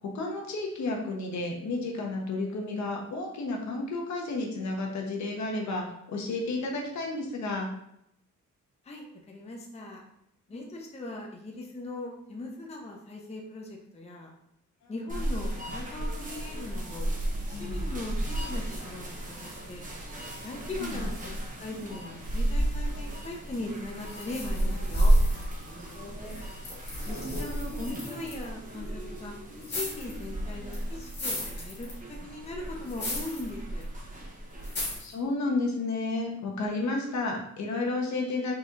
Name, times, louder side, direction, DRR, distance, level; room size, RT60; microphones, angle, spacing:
voice 1, 0.0-7.7 14.8-14.9 17.5-17.8 20.8-21.0 25.8-26.4 35.0-38.5, left 2 dB, 70° left, 0 dB, 1.0 m, -32 dB
voice 2, 8.8-10.0 10.5-14.3 14.9-17.1 17.5-19.8 20.4-25.1 27.1-29.3 29.7-33.9, left 2 dB, 20° left, 0 dB, 0.7 m, -40 dB
sound 1, 15.1-35.0, right 1 dB, 25° right, 0.9 m, -32 dB
sound 2, 24.0-25.9 26.3-28.5 29.6-30.2 30.7-32.2 32.9-33.5 33.8-33.9 34.6-35.1, left 2 dB, 35° left, 1.5 m, -38 dB
4.2 x 4.1 x 2.5 m, 0.77 s
cardioid pair, 120°, 30 cm